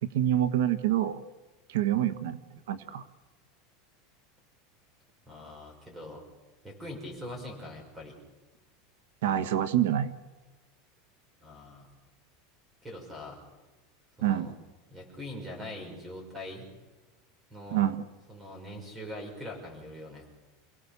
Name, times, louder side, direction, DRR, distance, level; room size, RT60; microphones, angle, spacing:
voice 1, 0.0-1.2 1.7-2.4 2.7-3.0 9.2-10.1 14.2-14.5 17.7-18.0, right 11 dB, 90° right, 11 dB, 1.3 m, -26 dB
voice 2, 5.3-6.2 6.6-8.2 11.4-11.9 12.8-13.4 14.2-14.5 14.9-16.7 17.5-17.8 18.3-20.3, left 1 dB, 10° right, 3 dB, 5.7 m, -42 dB
28.5 x 17.5 x 6.9 m, 1.2 s
supercardioid pair, 175°, 0 cm